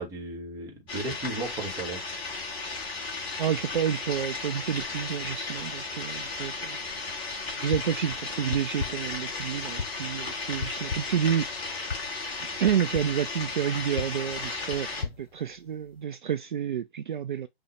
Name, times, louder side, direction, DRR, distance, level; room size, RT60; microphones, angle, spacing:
voice 1, 0.0-2.0, right 2 dB, 10° right, 0.9 m, -35 dB
sound 1, 0.9-15.0, left 3 dB, 15° left, 1.3 m, -35 dB
voice 2, 3.4-6.8 7.5-12.0 12.4-17.5, right 9 dB, 50° right, 0.4 m, -30 dB
sound 2, 7.7-8.1 8.5-9.2 9.8-10.1 10.6-11.3 11.9-12.2 12.7-13.2 14.0-16.0, left 5 dB, 65° left, 0.8 m, -37 dB
5.7 x 2.1 x 3.1 m
figure-of-eight pair, 135°, 31 cm